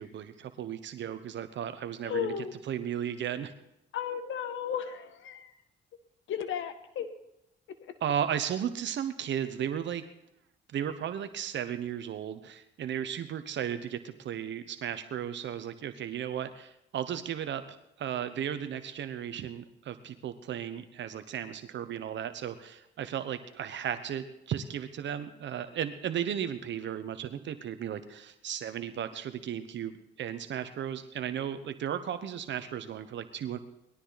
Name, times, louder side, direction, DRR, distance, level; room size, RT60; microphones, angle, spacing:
voice 1, 0.0-2.3 2.7-3.5 8.0-10.0 10.7-17.6 18.0-33.6, right 9 dB, 65° right, 10 dB, 1.2 m, -35 dB
voice 2, 2.0-2.5 3.9-5.5 6.3-7.1 7.8-7.9, left 8 dB, 75° left, 9 dB, 1.6 m, -34 dB
20.0 x 13.0 x 4.1 m, 0.83 s
cardioid pair, 90°, 20 cm